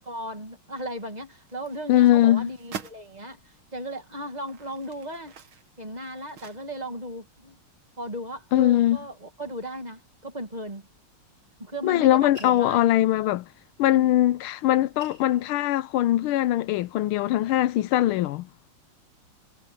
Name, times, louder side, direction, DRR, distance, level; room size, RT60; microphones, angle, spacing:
voice 1, 0.0-5.4 5.8-7.6 8.0-10.9 11.6-13.0 13.9-14.1, right 1 dB, 20° right, 1.8 m, -36 dB
sound 1, 1.5-3.0 3.7-3.8 4.3-7.0 7.3-7.4, right 7 dB, 70° right, 2.5 m, -44 dB
voice 2, 1.9-2.5 8.5-9.0 11.8-13.4 13.8-18.5, left 13 dB, 85° left, 1.5 m, -21 dB
sound 2, 12.4-13.3 14.4-14.5 14.8-16.4 16.9-17.5, right 1 dB, 40° right, 3.3 m, -49 dB
omnidirectional pair, 2.3 m